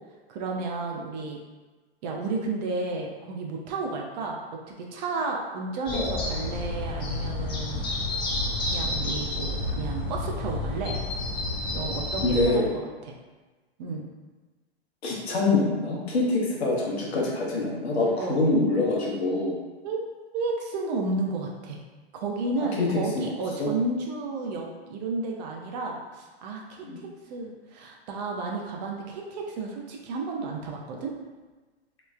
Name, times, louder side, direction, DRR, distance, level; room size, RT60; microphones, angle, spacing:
voice 1, 0.3-1.4 2.0-4.4 4.7-7.8 8.6-11.0 11.7-13.1 13.8-14.0 18.2-18.4 19.8-20.0 20.3-21.8 22.1-26.9 27.3-31.1, right 3 dB, 45° right, 0 dB, 0.5 m, -32 dB
sound 1, 5.9-12.5, left 2 dB, 15° left, 0.4 m, -30 dB
voice 2, 12.2-12.7 15.0-19.6 22.6-22.9 23.2-23.7 26.8-27.0, left 2 dB, 80° left, -3 dB, 0.8 m, -25 dB
3.0 x 2.0 x 2.3 m, 1.3 s
hypercardioid pair, 110°, 32 cm